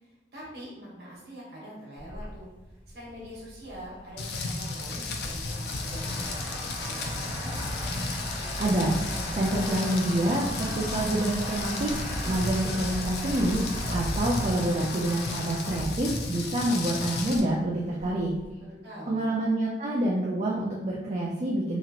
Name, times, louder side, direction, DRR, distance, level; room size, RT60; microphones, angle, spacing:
voice 1, 0.0-2.5 2.9-7.6 18.6-19.2, equal, 65° right, -6 dB, 1.1 m, -44 dB
sound 1, 2.0-18.5, equal, ahead, 1.0 m, -38 dB
Rain, 4.2-17.4, left 2 dB, 65° left, 0.4 m, -34 dB
voice 2, 8.6-9.0 9.3-11.9 12.2-13.6 13.9-18.3 19.1-21.8, right 1 dB, 40° right, -4 dB, 0.4 m, -27 dB
2.9 x 2.4 x 2.8 m, 1.0 s
head